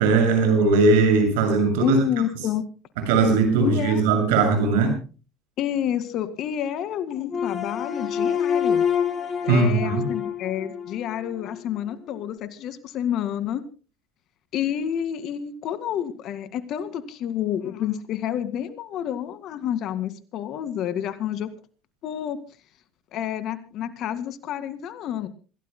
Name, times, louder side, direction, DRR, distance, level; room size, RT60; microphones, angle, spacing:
voice 1, 0.0-2.0 3.1-5.0 9.5-10.0, right 4 dB, 80° right, 5 dB, 6.8 m, -19 dB
voice 2, 1.8-2.6 3.6-4.0 5.6-8.8 9.4-13.7 14.5-21.5 22.0-22.4 23.1-25.3, left 10 dB, 60° left, 12 dB, 2.0 m, -29 dB
sound 1, 7.3-11.6, left 7 dB, 35° left, 4.8 m, -26 dB
27.0 x 17.0 x 2.2 m, 0.35 s
hypercardioid pair, 75°, 0 cm